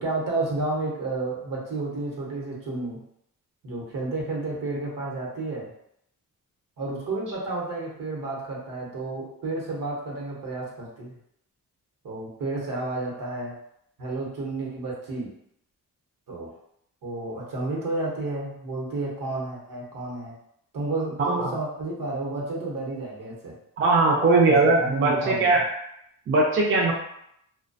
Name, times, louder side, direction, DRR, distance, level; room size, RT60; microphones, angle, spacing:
voice 1, 0.0-3.0 3.6-5.7 6.8-11.1 12.0-13.5 14.0-15.3 16.3-16.5 17.0-20.3 20.7-23.5 24.5-25.6, right 2 dB, 75° right, -4 dB, 0.9 m, -31 dB
voice 2, 21.2-21.5 23.8-25.6 26.3-26.9, right 3 dB, 40° right, -2 dB, 0.4 m, -20 dB
2.2 x 2.1 x 2.5 m, 0.75 s
wide cardioid pair, 130°, 33 cm